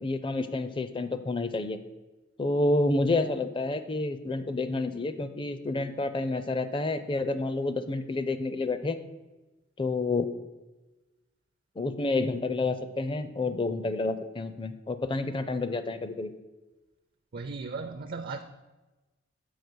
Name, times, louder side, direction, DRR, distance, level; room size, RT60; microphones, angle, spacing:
voice 1, 0.0-1.8 2.4-9.0 9.8-10.3 11.8-16.3, left 2 dB, 25° left, 11 dB, 0.5 m, -29 dB
voice 2, 17.3-18.4, right 4 dB, 50° right, 7 dB, 0.4 m, -36 dB
6.6 x 5.5 x 6.1 m, 1.1 s
head